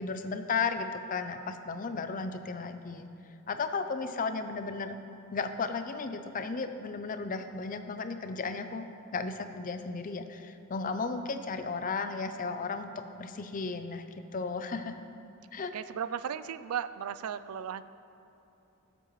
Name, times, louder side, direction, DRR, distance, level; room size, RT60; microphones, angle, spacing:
voice 1, 0.0-3.1 3.5-5.0 5.3-8.9 9.1-14.0 14.3-14.9 15.5-15.7, left 4 dB, 40° left, 8 dB, 0.6 m, -34 dB
voice 2, 14.5-14.8 15.7-17.8, right 8 dB, 85° right, 14 dB, 0.4 m, -36 dB
17.0 x 7.7 x 3.2 m, 2.9 s
head